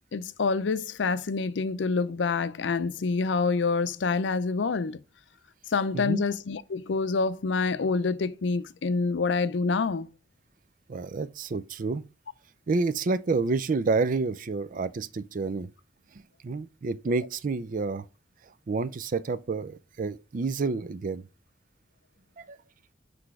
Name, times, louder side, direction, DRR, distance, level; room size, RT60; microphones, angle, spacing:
voice 1, 0.1-5.0 5.7-10.1, left 4 dB, 80° left, 0.5 m, -27 dB
voice 2, 10.9-12.0 12.7-15.7 16.4-18.0 18.7-21.2 22.4-22.5, right 3 dB, 45° right, 0.4 m, -29 dB
6.0 x 3.3 x 4.7 m
head